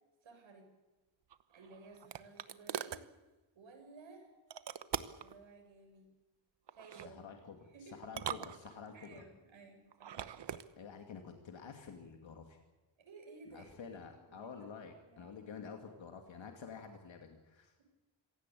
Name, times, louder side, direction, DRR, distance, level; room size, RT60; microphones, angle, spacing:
voice 1, 0.2-0.7 1.5-3.0 3.5-4.3 5.2-6.1 6.7-7.2 7.7-8.0 8.9-10.2 13.0-13.9 14.2-15.4 15.8-16.0, right 3 dB, 80° right, 3 dB, 7.5 m, -56 dB
sound 1, 1.3-3.1 4.5-5.3 6.7-7.1 8.0-9.1 9.9-10.7, right 9 dB, 65° right, 1.0 m, -42 dB
voice 2, 6.9-9.2 10.8-12.6 13.5-17.8, left 6 dB, 75° left, 3 dB, 2.5 m, -49 dB
26.0 x 17.0 x 8.6 m, 1.1 s
wide cardioid pair, 170°, 46 cm